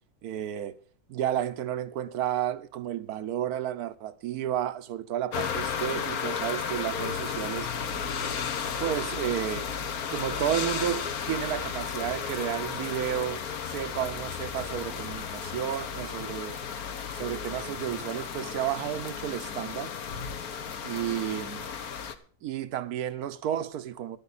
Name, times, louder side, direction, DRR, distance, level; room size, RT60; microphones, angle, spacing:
voice 1, 0.2-0.8 1.1-7.7 8.8-9.7 10.1-16.6 17.1-19.9 20.8-21.7 22.4-24.2, right 11 dB, 70° right, 1.3 m, -32 dB
sound 1, 5.3-22.1, left 7 dB, 65° left, 1.5 m, -34 dB
14.5 x 11.0 x 4.2 m
omnidirectional pair, 1.7 m